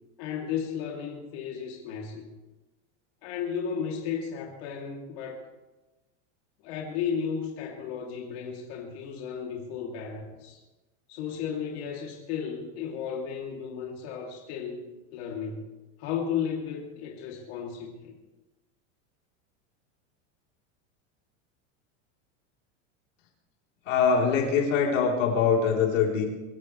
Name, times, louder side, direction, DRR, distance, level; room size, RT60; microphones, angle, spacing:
voice 1, 0.2-2.3 3.2-5.4 6.6-10.6 11.1-14.8 15.1-15.7 16.0-18.1, left 7 dB, 55° left, -1 dB, 3.0 m, -34 dB
voice 2, 23.9-26.3, left 6 dB, 80° left, -1 dB, 3.9 m, -23 dB
23.5 x 15.5 x 3.3 m, 1.1 s
supercardioid pair, 160°, 37 cm